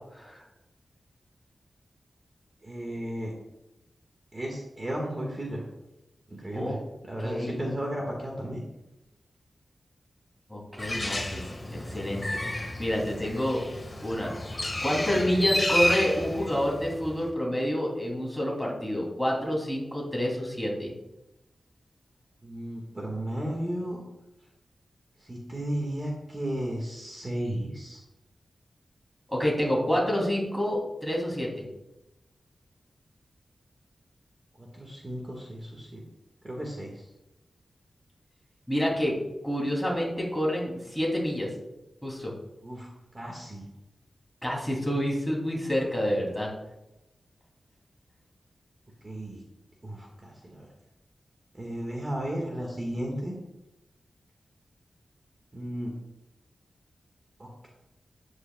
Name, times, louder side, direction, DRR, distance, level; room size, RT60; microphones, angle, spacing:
voice 1, 0.1-0.4 6.5-6.8 7.2-7.6 10.5-11.4 11.7-12.2 12.8-13.6 14.0-14.3 14.8-20.9 29.3-31.6 38.7-39.2 39.4-41.5 42.0-42.3 44.4-46.5, equal, ahead, -3 dB, 3.1 m, -28 dB
voice 2, 2.6-3.3 4.3-5.6 6.3-6.8 7.1-8.6 22.4-24.0 25.2-28.0 34.6-36.0 36.4-37.1 42.6-42.9 43.1-43.6 49.0-49.4 49.8-50.7 51.5-53.3 55.5-55.9 57.4-57.7, right 1 dB, 25° right, -1 dB, 1.8 m, -34 dB
Bird, 10.8-17.3, left 1 dB, 20° left, 1.7 m, -31 dB
13.0 x 9.9 x 2.4 m, 0.93 s
wide cardioid pair, 120°, 0 cm